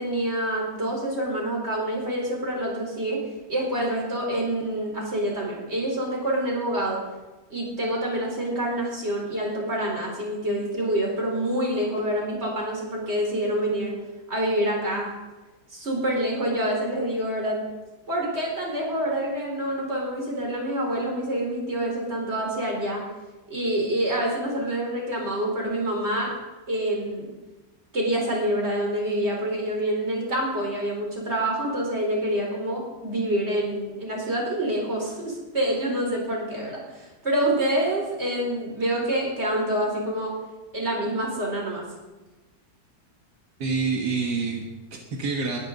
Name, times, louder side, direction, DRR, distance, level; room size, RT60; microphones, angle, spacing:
voice 1, 0.0-3.2 3.5-7.0 7.5-13.9 14.3-15.1 15.7-17.6 18.1-23.0 23.5-26.3 26.7-27.3 27.9-40.4 40.7-41.8, right 1 dB, 40° right, -1 dB, 4.6 m, -27 dB
voice 2, 43.6-45.6, right 4 dB, 85° right, 1 dB, 2.1 m, -27 dB
20.5 x 13.0 x 4.0 m, 1.2 s
omnidirectional pair, 1.7 m